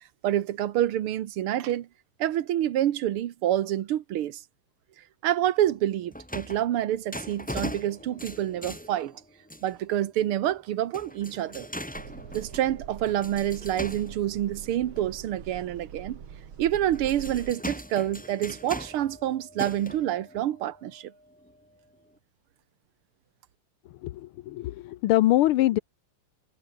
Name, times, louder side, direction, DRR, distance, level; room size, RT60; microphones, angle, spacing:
voice 1, 0.2-1.9 2.2-4.4 5.2-9.1 9.6-11.7 12.3-16.2 16.6-21.1, right 12 dB, 85° right, 2.0 m, -27 dB
sound 1, 5.6-9.9 10.2-10.6 10.9-15.1 15.7-15.8 16.7-21.6 22.2-22.3, equal, 5° left, 4.3 m, -40 dB
sound 2, 11.9-17.5, right 7 dB, 70° right, 2.7 m, -43 dB
voice 2, 24.0-25.8, left 15 dB, 85° left, 1.6 m, -23 dB
omnidirectional pair, 2.4 m